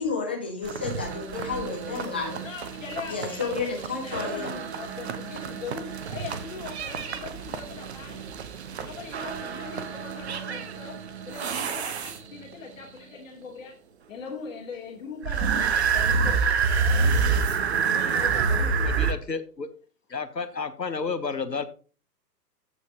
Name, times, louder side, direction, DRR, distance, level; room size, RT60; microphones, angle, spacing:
voice 1, 0.0-2.4 3.1-4.5, left 4 dB, 5° left, 0.5 m, -31 dB
sound 1, 0.6-12.5 15.2-19.1, right 5 dB, 40° right, 1.0 m, -28 dB
voice 2, 2.4-8.2 8.8-13.8 14.1-18.8, left 5 dB, 50° left, 3.3 m, -40 dB
voice 3, 18.7-19.7 20.1-21.7, left 5 dB, 80° left, 1.3 m, -31 dB
14.5 x 5.6 x 3.0 m
figure-of-eight pair, 125°, 49 cm